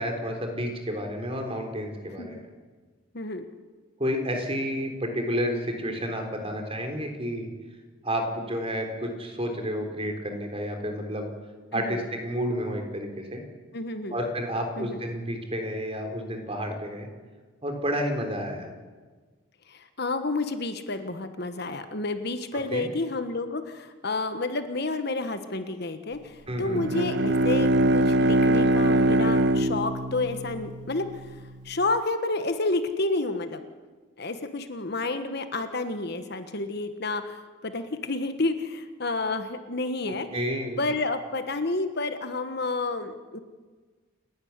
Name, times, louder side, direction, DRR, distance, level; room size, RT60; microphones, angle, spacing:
voice 1, 0.0-2.4 4.0-7.5 8.0-11.3 11.7-13.4 14.1-17.1 17.6-18.7 22.7-22.8 26.5-26.8 40.3-40.8, equal, 30° right, 4 dB, 3.9 m, -30 dB
voice 2, 3.1-3.5 11.7-12.0 13.7-14.2 14.8-15.0 19.7-31.4 31.6-33.6 34.2-40.3 40.8-43.4, left 2 dB, 55° left, 9 dB, 1.4 m, -30 dB
Bowed string instrument, 26.6-31.3, right 1 dB, 55° right, 0.8 m, -23 dB
29.5 x 12.0 x 9.7 m, 1.4 s
head